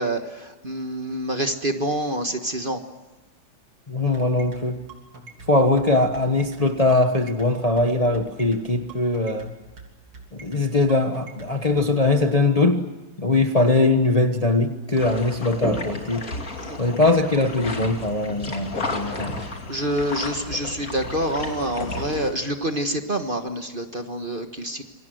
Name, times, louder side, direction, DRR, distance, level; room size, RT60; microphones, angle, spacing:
voice 1, 0.0-2.8 16.6-16.8 19.0-19.2 19.7-24.8, right 1 dB, 30° right, 6 dB, 1.5 m, -27 dB
voice 2, 3.9-4.8 5.5-9.5 10.3-12.9 13.2-16.3 16.8-19.4, left 2 dB, 25° left, 6 dB, 1.1 m, -21 dB
sound 1, 4.1-11.9, right 4 dB, 70° right, 4.1 m, -43 dB
sound 2, 15.0-22.3, left 2 dB, 45° left, 3.2 m, -32 dB
27.5 x 23.5 x 7.9 m, 1.1 s
omnidirectional pair, 2.0 m